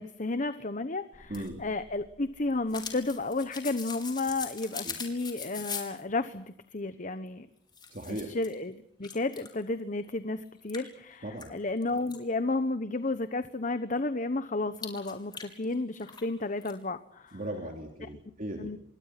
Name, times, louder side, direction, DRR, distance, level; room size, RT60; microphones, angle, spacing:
voice 1, 0.0-6.4 6.7-7.5 8.1-17.4 18.0-18.1 18.6-18.8, left 2 dB, 45° left, 11 dB, 1.1 m, -32 dB
sound 1, 1.1-6.0 7.3-7.4 7.7-8.5 9.0-9.6 10.0-10.1 10.7-12.2 14.8-16.3 16.6-16.7, left 6 dB, 25° left, 4.6 m, -42 dB
voice 2, 1.3-1.6 4.8-4.9 7.9-8.3 11.2-11.5 17.3-18.7, right 1 dB, 50° right, 2 dB, 3.1 m, -37 dB
28.0 x 23.0 x 6.0 m, 0.71 s
head